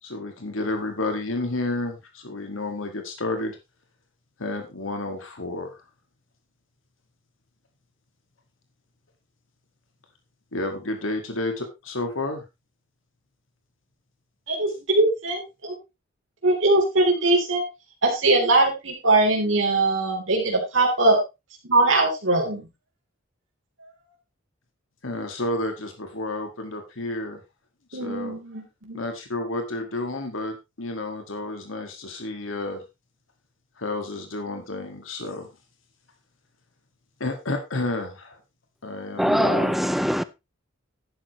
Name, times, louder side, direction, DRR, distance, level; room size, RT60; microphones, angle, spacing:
voice 1, 0.0-3.6 4.4-5.8 10.5-12.4 25.0-27.4 27.9-28.4 28.9-32.8 33.8-35.5 37.2-38.4 38.8-39.8, left 2 dB, 80° left, 1.8 m, -31 dB
voice 2, 14.5-15.7 16.4-17.6 18.0-21.2 21.7-22.7 27.9-29.0, right 2 dB, 70° right, 3.3 m, -21 dB
voice 3, 39.2-40.2, equal, ahead, 0.4 m, -22 dB
11.5 x 9.6 x 3.1 m
head